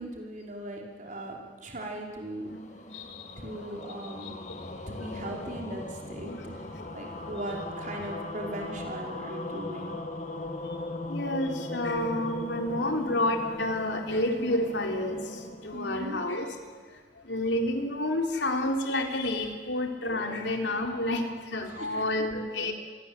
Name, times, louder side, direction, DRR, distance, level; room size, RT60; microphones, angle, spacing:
voice 1, 0.0-2.5 3.4-4.4 4.9-6.6 6.9-10.0 15.7-16.2 21.8-22.0, right 1 dB, 45° right, 0 dB, 5.3 m, -38 dB
sound 1, 2.2-16.6, left 1 dB, 40° left, 2.1 m, -39 dB
voice 2, 2.9-3.6 4.2-5.3 6.2-6.5 6.7-6.8 7.2-7.3 9.8-10.0 11.1-16.5 17.2-22.7, left 1 dB, 70° left, 3 dB, 3.8 m, -30 dB
28.5 x 23.0 x 9.1 m, 1.5 s
head